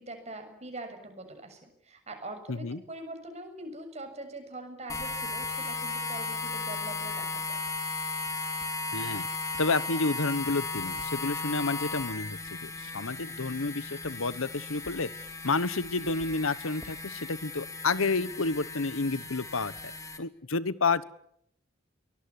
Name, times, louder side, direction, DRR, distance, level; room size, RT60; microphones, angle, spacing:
voice 1, 0.0-7.6, right 2 dB, 30° right, 5 dB, 7.0 m, -43 dB
voice 2, 2.5-2.8 8.9-9.3 9.6-15.1 15.4-19.7 20.2-21.0, left 3 dB, 80° left, 16 dB, 1.2 m, -30 dB
sound 1, 4.9-20.2, left 3 dB, 15° left, 2.3 m, -36 dB
23.5 x 19.5 x 9.9 m, 0.71 s
head